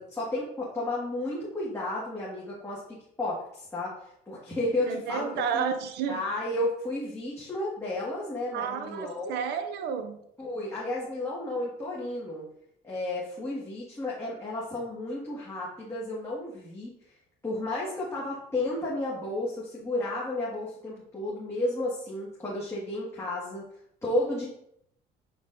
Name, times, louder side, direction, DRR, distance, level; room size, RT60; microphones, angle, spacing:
voice 1, 0.0-3.9 4.3-5.6 6.1-9.3 10.4-12.4 12.8-16.9 17.4-23.6 24.0-24.5, left 1 dB, 15° left, -7 dB, 1.8 m, -32 dB
voice 2, 4.9-6.2 8.5-10.2, right 7 dB, 80° right, 8 dB, 0.6 m, -31 dB
8.1 x 5.2 x 2.6 m, 0.73 s
cardioid pair, 110°, 17 cm